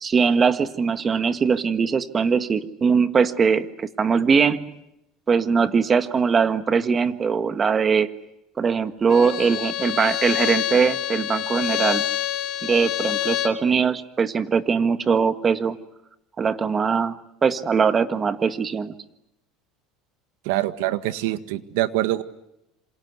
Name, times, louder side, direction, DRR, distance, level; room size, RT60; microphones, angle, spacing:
voice 1, 0.0-4.8 5.3-8.1 8.6-12.1 12.6-15.8 16.4-17.2 17.4-18.9, right 5 dB, 25° right, 11 dB, 1.6 m, -21 dB
Bowed string instrument, 9.1-13.6, left 12 dB, 45° left, 3.2 m, -26 dB
voice 2, 20.4-22.2, right 16 dB, 80° right, 12 dB, 1.7 m, -24 dB
27.0 x 26.5 x 8.1 m, 0.86 s
cardioid pair, 135°, 0 cm